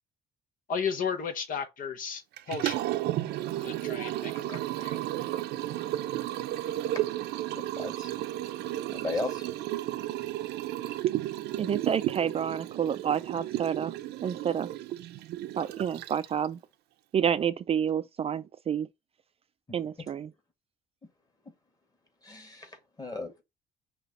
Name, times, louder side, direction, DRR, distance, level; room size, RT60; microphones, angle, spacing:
voice 1, 0.7-2.9 3.6-5.0, left 6 dB, 55° left, 1.0 m, -34 dB
Liquid, 2.4-16.5, right 14 dB, 75° right, 0.6 m, -33 dB
voice 2, 7.6-8.1 8.9-9.4 22.2-23.4, left 3 dB, 20° left, 2.1 m, -36 dB
voice 3, 11.6-14.0 14.2-14.7 15.6-16.6 17.1-18.9 19.7-20.3, right 8 dB, 35° right, 0.4 m, -29 dB
5.8 x 3.0 x 5.4 m
cardioid pair, 110°, 17 cm